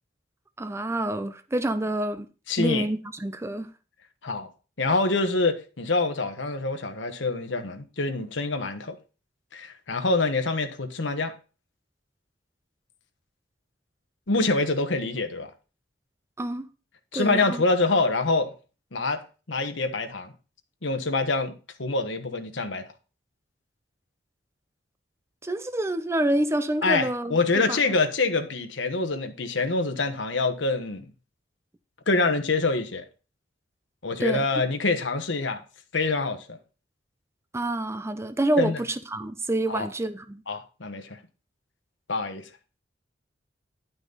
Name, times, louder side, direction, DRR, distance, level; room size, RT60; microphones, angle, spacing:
voice 1, 0.6-2.3 2.6-3.7 16.4-16.7 17.1-17.6 25.4-27.8 34.2-34.4 37.5-40.4, right 1 dB, 15° right, 0.5 m, -27 dB
voice 2, 2.5-2.9 4.2-4.5 4.8-9.0 9.5-11.3 14.3-15.5 17.1-18.5 18.9-20.3 20.8-22.9 26.8-31.1 32.1-33.0 34.0-35.6 35.9-36.6 38.6-38.8 39.7-39.9 40.5-41.2 42.1-42.5, left 3 dB, 70° left, 1.2 m, -26 dB
10.5 x 6.1 x 4.0 m
head